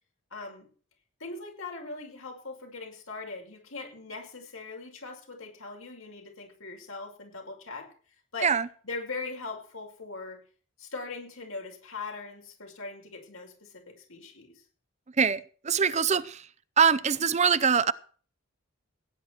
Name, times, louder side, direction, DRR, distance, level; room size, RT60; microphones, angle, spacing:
voice 1, 0.3-0.7 1.2-7.9 8.3-8.5 8.8-10.4 10.8-14.6, left 3 dB, 75° left, 2 dB, 5.7 m, -40 dB
voice 2, 15.2-16.4 16.8-17.9, right 6 dB, 30° right, 17 dB, 0.6 m, -23 dB
17.5 x 10.0 x 4.7 m, 0.42 s
head